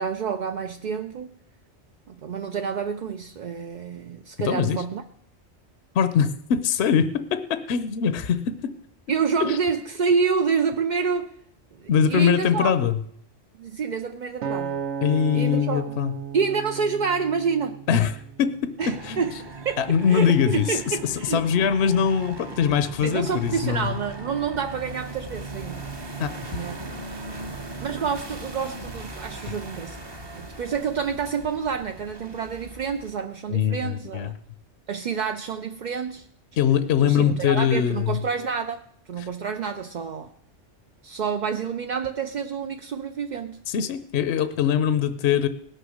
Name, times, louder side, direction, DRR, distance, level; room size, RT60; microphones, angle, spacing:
voice 1, 0.0-1.3 2.1-5.0 9.1-11.3 11.8-12.7 13.6-14.8 15.3-16.0 16.3-17.8 18.8-21.7 23.0-26.2 26.5-27.2 27.8-30.0 30.4-34.3 34.9-36.3 37.0-38.8 39.1-40.3 41.0-43.6, right 6 dB, 50° right, 6 dB, 0.6 m, -28 dB
voice 2, 4.4-4.8 5.9-8.7 9.4-9.6 11.9-13.0 15.0-16.1 17.9-18.1 18.4-19.3 19.8-24.0 26.2-26.6 33.5-34.3 36.6-38.2 39.2-39.3 43.7-45.5, left 8 dB, 65° left, 11 dB, 0.9 m, -22 dB
Acoustic guitar, 14.4-18.8 19.4-19.6, right 7 dB, 70° right, 1.1 m, -34 dB
sound 1, 18.8-33.2, right 2 dB, 25° right, 0.8 m, -38 dB
18.5 x 6.6 x 6.4 m, 0.69 s
omnidirectional pair, 1.3 m